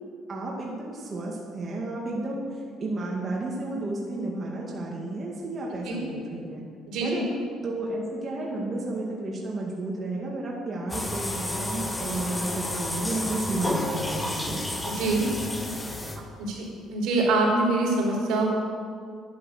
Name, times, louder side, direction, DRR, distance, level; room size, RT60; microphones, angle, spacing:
voice 1, 0.3-6.6 7.0-7.3 7.6-14.6, right 2 dB, 35° right, -3 dB, 2.1 m, -32 dB
voice 2, 6.9-7.2 14.8-15.4 16.4-18.6, right 2 dB, 80° right, -2 dB, 4.0 m, -25 dB
sound 1, 10.9-16.5, left 1 dB, 15° left, 1.3 m, -31 dB
11.0 x 10.5 x 6.7 m, 2.2 s
cardioid pair, 115°, 0 cm